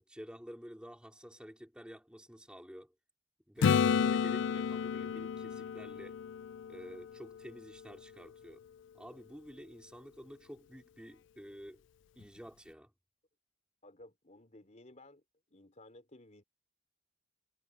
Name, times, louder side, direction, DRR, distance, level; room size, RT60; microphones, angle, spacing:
voice 1, 0.0-2.9 3.5-6.2 6.7-8.6 8.9-11.8 12.2-12.9, equal, 5° right, 3.8 m, -50 dB
Acoustic guitar / Strum, 3.6-7.4 12.2-12.3, left 7 dB, 65° left, 0.3 m, -31 dB
voice 2, 13.8-15.2 15.5-16.4, left 1 dB, 35° left, 3.6 m, -56 dB
head